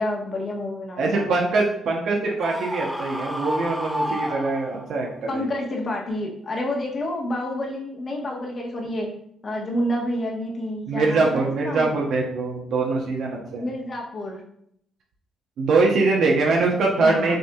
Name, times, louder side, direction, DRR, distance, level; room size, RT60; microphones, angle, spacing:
voice 1, 0.0-1.4 5.3-9.1 9.4-11.9 13.6-14.4 17.0-17.4, left 1 dB, 40° left, 0 dB, 1.2 m, -29 dB
voice 2, 1.0-5.5 10.9-13.7 15.6-17.4, right 3 dB, 70° right, -1 dB, 0.8 m, -23 dB
Screaming, 2.4-5.1, equal, 5° right, 0.5 m, -30 dB
6.3 x 2.7 x 2.3 m, 0.69 s
cardioid pair, 90°, 0 cm